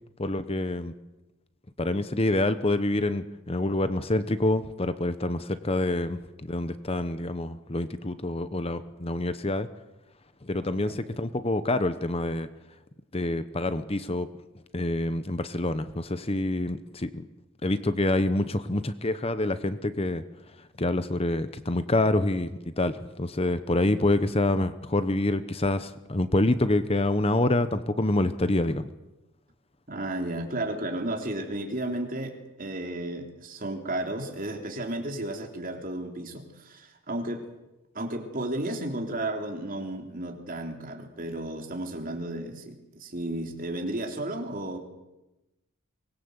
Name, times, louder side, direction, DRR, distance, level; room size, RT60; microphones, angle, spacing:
voice 1, 0.2-0.9 1.8-6.2 6.5-9.7 10.4-12.5 13.1-14.3 14.7-17.2 17.6-20.2 20.6-28.9, left 2 dB, 25° left, 12 dB, 0.9 m, -27 dB
voice 2, 29.9-37.5 37.9-44.8, right 1 dB, 40° right, 3 dB, 3.6 m, -33 dB
24.5 x 20.5 x 8.2 m, 0.99 s
head